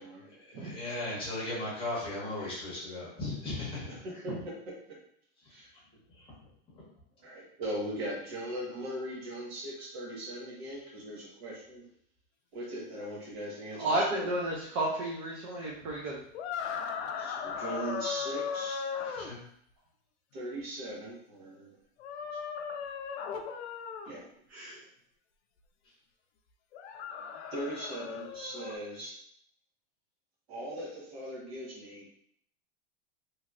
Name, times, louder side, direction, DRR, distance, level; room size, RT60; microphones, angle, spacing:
voice 1, 0.2-4.0 6.2-6.3 19.1-19.4, left 2 dB, 15° left, -6 dB, 0.9 m, -37 dB
voice 2, 4.0-4.7 5.5-5.7 7.2-11.8 12.5-14.3 17.2-18.8 20.3-21.7 24.0-24.3 27.5-29.2 30.5-32.2, right 1 dB, 65° right, -3 dB, 1.3 m, -39 dB
voice 3, 13.8-16.2 24.5-24.8, right 1 dB, 30° right, -4 dB, 0.4 m, -32 dB
sound 1, 16.3-19.3 22.0-24.1 26.7-28.8, left 7 dB, 80° left, 0.5 m, -37 dB
3.1 x 2.7 x 2.4 m, 0.68 s
supercardioid pair, 165°, 33 cm